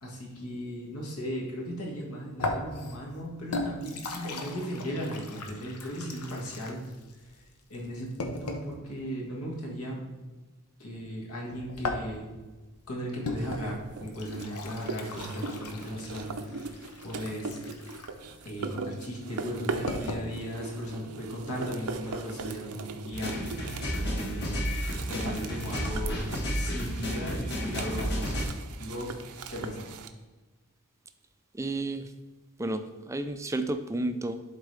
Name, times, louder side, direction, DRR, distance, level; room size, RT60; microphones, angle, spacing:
voice 1, 0.0-6.8 7.7-10.0 10.8-12.3 12.9-16.7 17.0-17.6 18.5-23.3 24.1-24.7 25.1-28.4 28.8-29.2 29.5-29.9, equal, 75° left, -2 dB, 1.8 m, -37 dB
sound 1, 2.4-8.8 11.5-20.3, left 2 dB, 90° left, 0.9 m, -38 dB
sound 2, 13.3-30.1, right 4 dB, 80° right, 0.6 m, -40 dB
sound 3, 23.1-28.4, equal, 50° left, 1.5 m, -32 dB
voice 2, 31.5-32.1 32.6-34.4, right 2 dB, 15° right, 8 dB, 0.4 m, -32 dB
11.5 x 4.1 x 3.4 m, 1.2 s
head